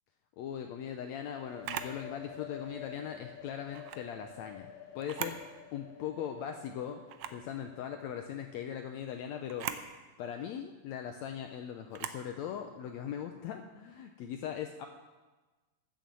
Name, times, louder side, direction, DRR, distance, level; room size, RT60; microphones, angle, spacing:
voice 1, 0.4-5.4 5.7-7.0 7.3-9.7 10.2-14.9, left 9 dB, 80° left, 5 dB, 1.7 m, -40 dB
sound 1, 1.3-8.9, left 8 dB, 60° left, 2.2 m, -50 dB
Camera, 1.6-2.0 3.7-4.0 5.0-5.5 5.9-6.0 7.1-7.4 9.5-9.9 11.9-12.2, right 10 dB, 80° right, 1.5 m, -39 dB
12.5 x 7.3 x 7.6 m, 1.2 s
omnidirectional pair, 3.7 m